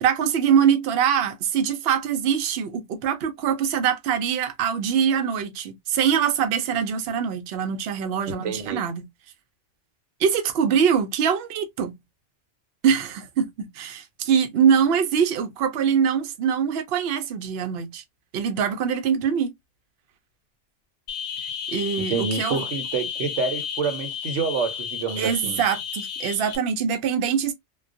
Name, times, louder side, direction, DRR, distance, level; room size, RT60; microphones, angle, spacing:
voice 1, 0.0-9.1 10.2-12.0 12.8-18.0 18.3-19.5 21.7-22.7 25.2-27.5, right 7 dB, 65° right, 0.7 m, -23 dB
voice 2, 8.3-8.8 22.1-25.6, right 5 dB, 85° right, 1.0 m, -28 dB
sound 1, 21.1-26.6, left 7 dB, 80° left, 1.0 m, -32 dB
2.3 x 2.2 x 2.4 m
omnidirectional pair, 1.2 m